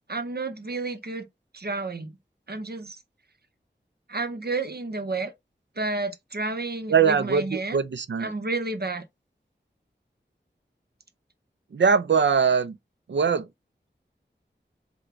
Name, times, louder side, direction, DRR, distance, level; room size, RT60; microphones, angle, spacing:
voice 1, 0.1-1.3 1.5-2.2 2.5-3.0 4.1-5.3 5.8-7.8 8.2-9.0, right 3 dB, 60° right, 0.8 m, -31 dB
voice 2, 6.9-8.4 11.7-12.8 13.1-13.5, right 6 dB, 75° right, 0.5 m, -22 dB
3.8 x 2.2 x 4.3 m
wide cardioid pair, 50°, 19 cm